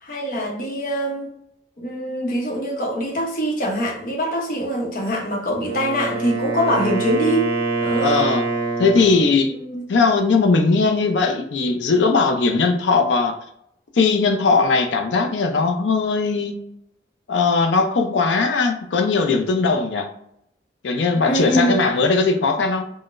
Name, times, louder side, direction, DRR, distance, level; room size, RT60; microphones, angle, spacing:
voice 1, 0.0-1.3 1.8-7.5 7.8-8.3 9.5-9.8 21.3-21.8, equal, 50° left, 0.8 m, -23 dB
Wind instrument woodwind instrument, 5.5-9.4, right 3 dB, 75° right, 0.6 m, -25 dB
voice 2, 8.0-8.4 8.8-9.5 9.9-13.4 13.9-16.6 17.3-20.1 20.8-22.9, left 4 dB, 80° left, 0.5 m, -19 dB
3.8 x 2.1 x 2.5 m
head